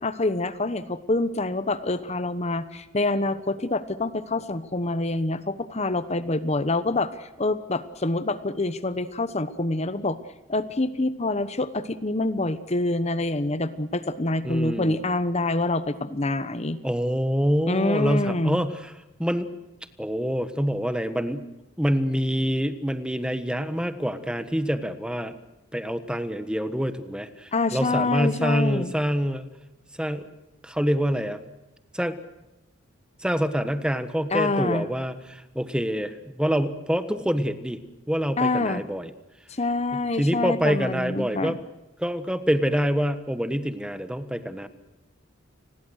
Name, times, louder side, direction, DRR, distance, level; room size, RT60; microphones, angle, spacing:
voice 1, 0.0-10.2 10.5-16.8 17.7-18.6 27.5-28.9 34.3-34.9 38.4-38.8 39.5-41.6, left 2 dB, 35° left, 13 dB, 1.1 m, -26 dB
voice 2, 14.4-15.0 16.8-18.9 19.2-19.5 20.0-21.5 21.8-25.3 25.7-29.5 30.0-30.3 30.6-31.4 31.9-32.2 33.2-37.8 38.1-39.1 40.2-41.6 42.0-44.7, equal, 5° right, 11 dB, 1.4 m, -26 dB
30.0 x 21.0 x 6.5 m, 0.99 s
head